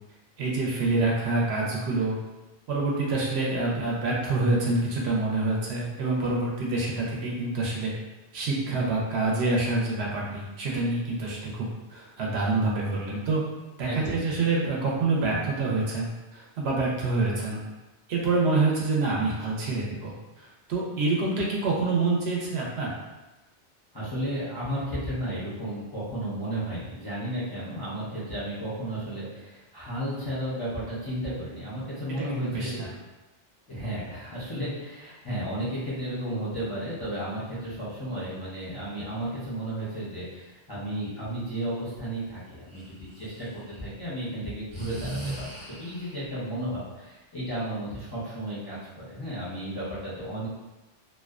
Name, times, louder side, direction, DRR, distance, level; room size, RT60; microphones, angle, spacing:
voice 1, 0.4-2.2 2.7-7.9 8.3-13.4 13.8-17.6 18.1-22.9 32.2-32.9, right 3 dB, 70° right, -3 dB, 0.8 m, -27 dB
voice 2, 13.9-14.2 23.9-32.8 33.7-50.5, right 1 dB, 25° left, -11 dB, 0.5 m, -33 dB
Breathing, 42.7-43.8 44.7-46.3, right 1 dB, 30° right, 0.7 m, -38 dB
2.5 x 2.1 x 2.3 m, 1.1 s
omnidirectional pair, 1.2 m